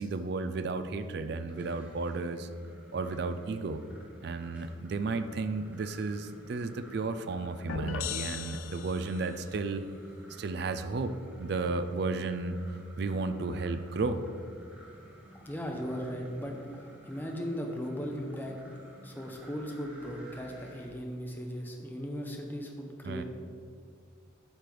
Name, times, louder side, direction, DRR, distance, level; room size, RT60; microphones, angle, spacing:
voice 1, 0.0-2.5 2.9-3.8 4.2-9.8 10.4-14.2 23.0-23.2, right 3 dB, 55° right, 10 dB, 0.4 m, -33 dB
sound 1, 1.4-20.9, equal, 5° right, 1.1 m, -53 dB
sound 2, 7.7-9.4, left 6 dB, 85° left, 0.5 m, -37 dB
voice 2, 15.4-18.6 19.0-23.2, equal, 10° left, 1 dB, 0.7 m, -37 dB
8.2 x 3.4 x 6.0 m, 2.2 s
head